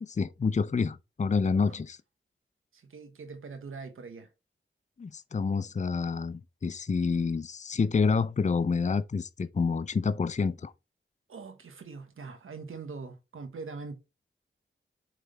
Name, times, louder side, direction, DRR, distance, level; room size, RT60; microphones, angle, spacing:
voice 1, 0.0-2.0 5.0-10.7, left 5 dB, 35° left, 0.5 m, -28 dB
voice 2, 2.7-4.3 11.3-14.0, right 4 dB, 85° right, 1.3 m, -42 dB
8.1 x 3.3 x 4.0 m
cardioid pair, 45°, 21 cm